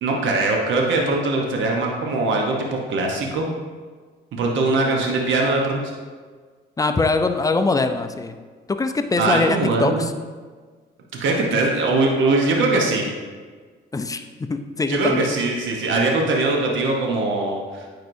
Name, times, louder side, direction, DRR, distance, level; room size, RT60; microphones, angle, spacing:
voice 1, 0.0-3.5 4.3-5.9 9.2-10.0 11.2-13.1 14.9-17.9, right 2 dB, 75° right, 0 dB, 1.0 m, -21 dB
voice 2, 6.8-8.4 8.7-10.1 13.9-14.2 14.5-15.3, left 3 dB, 15° left, 8 dB, 0.4 m, -22 dB
9.1 x 4.7 x 2.7 m, 1.5 s
cardioid pair, 90°, 20 cm